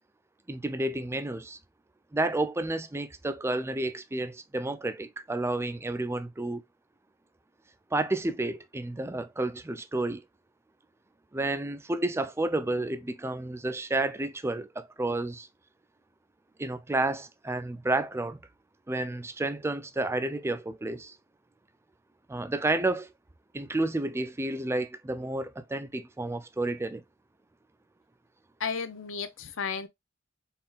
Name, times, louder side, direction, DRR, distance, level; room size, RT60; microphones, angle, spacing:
voice 1, 0.5-1.6 2.1-6.6 7.9-10.2 11.3-15.5 16.6-18.4 18.9-21.1 22.3-23.1 23.5-27.0, right 2 dB, 15° right, 0.4 m, -31 dB
voice 2, 28.6-29.9, left 6 dB, 70° left, 0.7 m, -33 dB
4.2 x 3.7 x 2.3 m
head